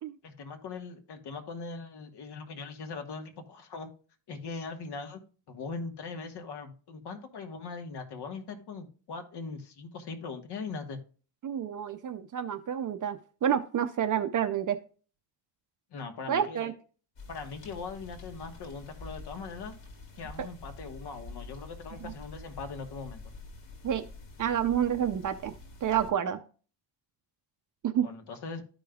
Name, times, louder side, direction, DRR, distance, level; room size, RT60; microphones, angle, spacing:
voice 1, 0.2-3.9 4.3-11.0 15.9-16.7 17.3-19.7 20.2-23.2 28.0-28.6, left 4 dB, 65° left, 5 dB, 1.4 m, -40 dB
voice 2, 11.4-14.8 16.3-16.7 20.4-20.5 22.0-22.1 23.8-24.0 24.4-25.5 25.8-26.4 27.8-28.1, right 9 dB, 45° right, 10 dB, 0.5 m, -29 dB
sound 1, 17.2-26.1, left 3 dB, 85° left, 2.1 m, -47 dB
13.5 x 5.1 x 2.3 m, 0.38 s
cardioid pair, 160°, 44 cm